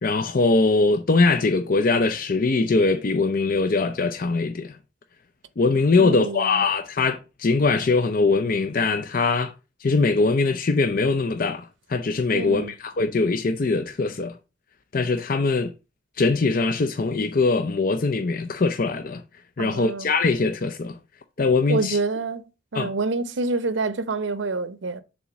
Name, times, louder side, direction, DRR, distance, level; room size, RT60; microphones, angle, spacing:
voice 1, 0.0-4.8 5.6-9.5 9.8-14.4 14.9-15.7 16.2-19.2 19.6-21.0 21.4-22.0 22.7-22.9, left 3 dB, 50° left, 0.5 m, -22 dB
voice 2, 6.0-6.5 12.3-12.7 19.6-20.1 21.7-22.4 22.7-25.0, right 3 dB, 80° right, 0.7 m, -27 dB
7.0 x 3.7 x 6.0 m
head